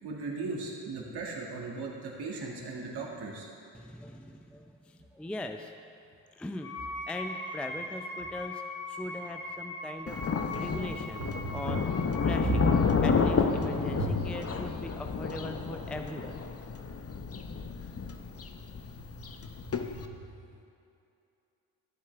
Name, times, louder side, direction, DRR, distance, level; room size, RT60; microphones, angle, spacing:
voice 1, 0.0-3.5 11.2-11.8 12.3-12.6 13.9-14.2 19.9-20.2, right 3 dB, 60° right, -2 dB, 2.1 m, -35 dB
voice 2, 3.7-5.7 6.3-8.6 8.9-11.2 11.5-11.9 12.2-16.4, left 1 dB, ahead, 6 dB, 0.5 m, -40 dB
Wind instrument woodwind instrument, 6.6-12.9, left 2 dB, 50° left, 1.8 m, -40 dB
Thunder, 10.1-20.1, left 5 dB, 30° left, 0.8 m, -30 dB
13.0 x 7.6 x 3.4 m, 2.6 s
hypercardioid pair, 50°, 44 cm